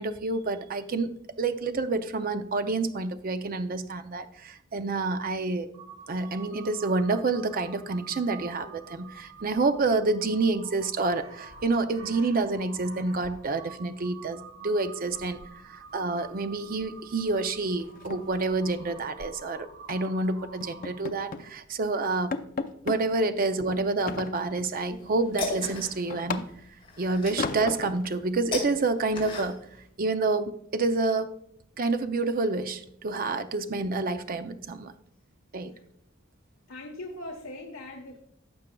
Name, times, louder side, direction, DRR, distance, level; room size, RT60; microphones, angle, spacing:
voice 1, 0.0-5.7 6.1-22.3 22.8-26.4 27.0-29.6 30.0-31.3 31.8-34.9 35.5-35.7, right 3 dB, 45° right, 9 dB, 0.5 m, -28 dB
Crow, 5.7-21.2, right 4 dB, 75° right, 1.1 m, -48 dB
sound 1, 15.1-16.0 16.2-16.5 16.8-17.0 17.3-17.4 17.8-19.4 19.9-20.1 20.6-21.5 21.9-22.0 22.3-23.0 24.1-24.8 25.2-26.8 27.4-28.1, left 4 dB, 40° left, 0.5 m, -36 dB
sound 2, 24.8-29.9, left 3 dB, 25° left, 3.2 m, -37 dB
voice 2, 36.7-38.2, left 2 dB, 75° left, 1 dB, 1.1 m, -40 dB
15.5 x 6.3 x 2.3 m, 0.69 s
head